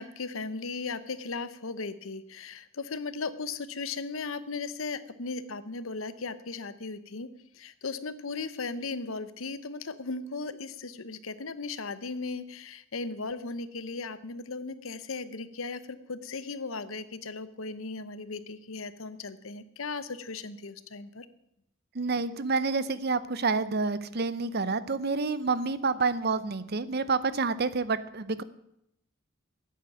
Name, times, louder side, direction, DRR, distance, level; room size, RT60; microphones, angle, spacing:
voice 1, 0.0-7.3 7.5-21.3, left 4 dB, 80° left, 14 dB, 0.9 m, -37 dB
voice 2, 21.9-28.4, right 4 dB, 50° right, 15 dB, 0.7 m, -28 dB
11.5 x 8.5 x 9.3 m, 0.78 s
head